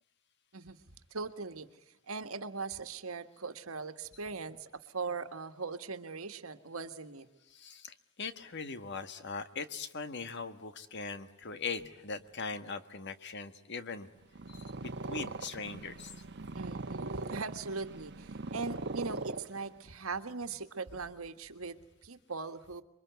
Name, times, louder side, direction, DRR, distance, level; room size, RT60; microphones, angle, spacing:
voice 1, 1.1-1.7 2.1-7.3 16.5-22.8, right 4 dB, 90° right, 9 dB, 1.7 m, -40 dB
voice 2, 7.5-14.1 14.5-16.1, left 4 dB, 55° left, 10 dB, 1.6 m, -40 dB
Purr, 14.2-19.9, right 3 dB, 55° right, 1.2 m, -40 dB
27.0 x 23.0 x 9.4 m, 0.88 s
head